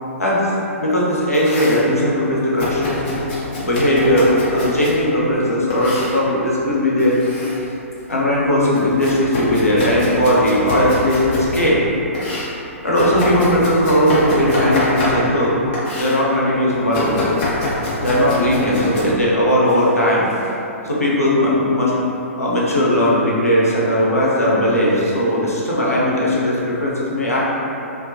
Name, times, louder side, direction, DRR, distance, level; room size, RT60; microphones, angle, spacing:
voice 1, 0.2-0.5 0.8-3.0 3.6-7.2 8.1-11.8 12.8-15.5 15.9-17.2 18.0-20.3 20.8-21.9 22.4-27.4, equal, 85° left, -6 dB, 0.6 m, -18 dB
Domestic sounds home sounds, 1.1-1.8 2.6-5.0 5.7-6.2 7.0-7.6 8.0-11.7 12.1-15.4 15.7-16.2 16.9-19.0, left 1 dB, 35° left, 0.6 m, -25 dB
2.3 x 2.1 x 2.6 m, 2.8 s
figure-of-eight pair, 120°, 8 cm